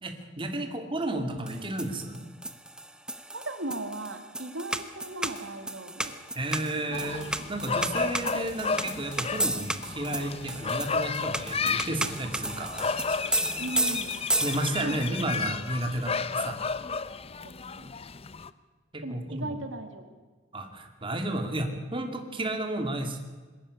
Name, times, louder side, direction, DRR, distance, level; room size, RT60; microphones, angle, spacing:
voice 1, 0.0-2.3 6.3-13.3 14.4-16.8 18.9-19.5 20.5-23.2, right 1 dB, 25° right, 5 dB, 2.2 m, -32 dB
sound 1, 1.5-15.0, right 1 dB, 5° right, 0.9 m, -33 dB
voice 2, 3.3-6.2 6.4-7.1 7.4-7.5 13.6-14.2 14.8-15.4 17.4-17.9 19.0-20.1, right 2 dB, 90° right, 7 dB, 2.2 m, -38 dB
sound 2, 6.9-18.5, left 5 dB, 30° left, 0.7 m, -33 dB
22.0 x 13.0 x 9.7 m, 1.4 s
head